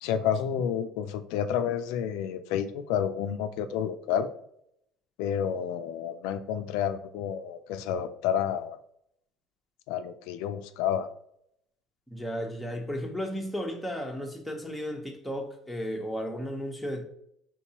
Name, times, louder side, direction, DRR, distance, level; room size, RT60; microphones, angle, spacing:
voice 1, 0.0-4.3 5.2-8.8 9.9-11.1, left 8 dB, 80° left, 0.3 m, -30 dB
voice 2, 12.1-17.1, equal, 5° left, 0.9 m, -34 dB
4.5 x 3.6 x 2.9 m
supercardioid pair, 110°, 0 cm